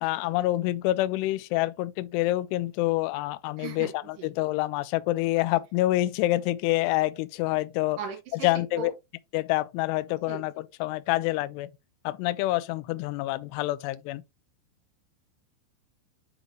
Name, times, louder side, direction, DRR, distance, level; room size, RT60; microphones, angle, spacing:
voice 1, 0.0-8.0 8.3-8.9 9.3-11.7 12.0-14.2, left 17 dB, 85° left, 2.4 m, -27 dB
voice 2, 3.6-3.9 4.2-4.3 8.0-8.5 8.8-8.9 10.3-10.4, right 6 dB, 60° right, 3.0 m, -36 dB
9.3 x 3.8 x 3.0 m
omnidirectional pair, 5.2 m